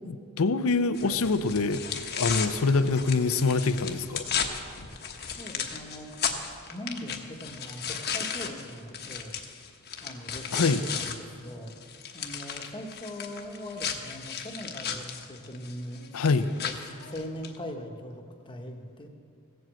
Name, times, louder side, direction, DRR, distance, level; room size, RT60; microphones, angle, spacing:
voice 1, 0.1-1.8 2.2-4.3 10.5-10.8 16.1-16.5, left 3 dB, 70° left, 12 dB, 0.6 m, -25 dB
sound 1, 0.9-11.2 11.5-17.6, left 7 dB, 50° left, 1.1 m, -35 dB
voice 2, 5.4-6.1 6.7-9.3 10.0-11.7 12.1-16.0 16.5-16.7 17.0-19.1, equal, 25° left, 3 dB, 1.2 m, -40 dB
16.0 x 7.8 x 7.6 m, 2.3 s
head